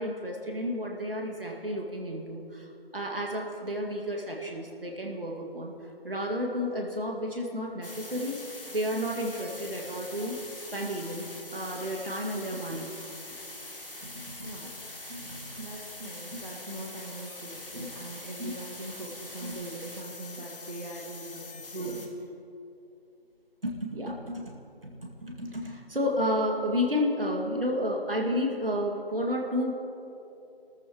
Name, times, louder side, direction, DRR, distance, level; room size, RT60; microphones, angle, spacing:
voice 1, 0.0-5.7 6.0-11.2 11.5-12.9 14.0-14.5 15.1-15.8 16.3-16.4 17.7-17.9 18.4-18.5 19.4-19.6 21.7-22.0 23.6-24.6 24.8-29.7, equal, 65° right, -1 dB, 2.3 m, -32 dB
sound 1, 7.8-22.1, left 2 dB, 65° left, 2.0 m, -43 dB
voice 2, 14.4-14.8 15.6-22.1, right 2 dB, 50° right, -4 dB, 1.9 m, -42 dB
25.0 x 13.5 x 3.1 m, 2.8 s
figure-of-eight pair, 175°, 30 cm